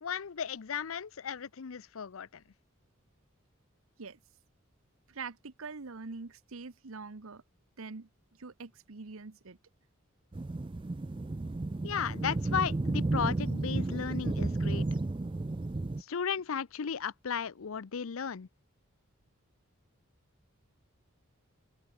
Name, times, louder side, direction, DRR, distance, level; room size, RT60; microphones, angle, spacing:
voice 1, 0.0-2.4 11.8-14.9 16.0-18.5, left 7 dB, 75° left, 0.6 m, -35 dB
voice 2, 5.1-7.4 7.8-9.6, right 4 dB, 80° right, 1.0 m, -44 dB
sound 1, 10.3-16.0, right 2 dB, 25° right, 0.4 m, -32 dB
open air
head